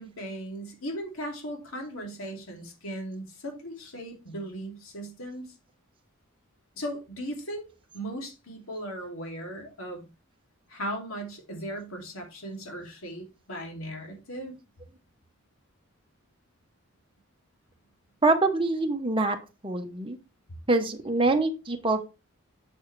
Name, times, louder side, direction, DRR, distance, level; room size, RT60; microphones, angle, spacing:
voice 1, 0.0-5.5 6.8-7.7 7.9-10.1 10.7-14.5, equal, 75° left, 2.6 m, -37 dB
voice 2, 18.2-19.4 19.6-20.2 20.7-22.1, right 2 dB, 25° right, 1.0 m, -25 dB
7.3 x 7.2 x 3.2 m
head